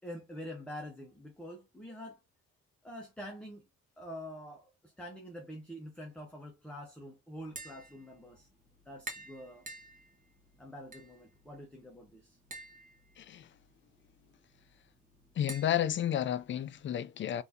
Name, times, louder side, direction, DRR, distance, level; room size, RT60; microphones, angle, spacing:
voice 1, 0.0-2.2 2.8-3.7 4.0-8.5 8.9-9.7 10.6-12.4, equal, 5° left, 0.8 m, -46 dB
Tap, 7.4-16.9, right 2 dB, 25° right, 1.0 m, -51 dB
voice 2, 13.2-13.5 15.4-17.4, left 10 dB, 40° left, 0.4 m, -32 dB
3.4 x 2.6 x 2.6 m
cardioid pair, 90°, 30 cm